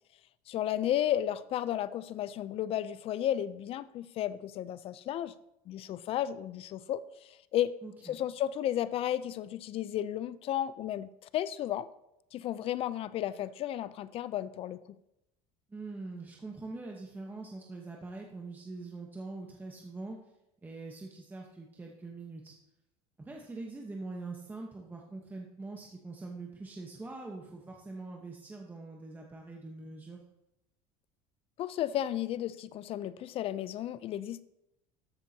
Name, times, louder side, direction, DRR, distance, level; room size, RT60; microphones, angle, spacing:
voice 1, 0.5-5.3 5.7-7.7 8.0-11.9 12.3-14.8 31.6-34.4, left 11 dB, 45° left, 16 dB, 0.5 m, -33 dB
voice 2, 7.8-8.2 15.7-20.2 20.6-22.6 23.2-30.2, right 3 dB, 15° right, 0 dB, 1.0 m, -43 dB
13.0 x 7.2 x 2.8 m, 0.86 s
supercardioid pair, 125°, 14 cm